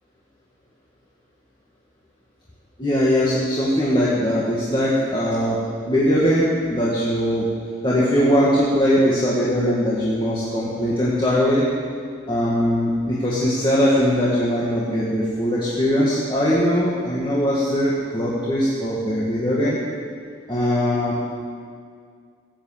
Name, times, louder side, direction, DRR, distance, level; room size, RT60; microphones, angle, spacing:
voice 1, 2.8-5.6 5.9-7.5 7.8-11.6 12.3-19.8 20.5-21.3, equal, 25° left, -8 dB, 2.0 m, -20 dB
16.5 x 8.8 x 7.4 m, 2.1 s
head